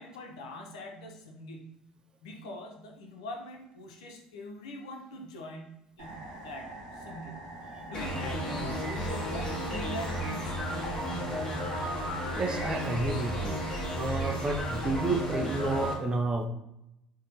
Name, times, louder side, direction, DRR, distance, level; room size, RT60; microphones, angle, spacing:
voice 1, 0.0-1.8 2.2-7.5 7.9-10.6, left 1 dB, 85° left, 2 dB, 0.5 m, -43 dB
sound 1, 6.0-14.8, right 2 dB, 70° right, 0.9 m, -45 dB
sound 2, 7.9-15.9, equal, 30° left, 0.9 m, -33 dB
voice 2, 12.4-16.5, right 2 dB, 25° right, 4 dB, 0.5 m, -31 dB
2.6 x 2.1 x 2.9 m, 0.84 s
hypercardioid pair, 75°, 3 cm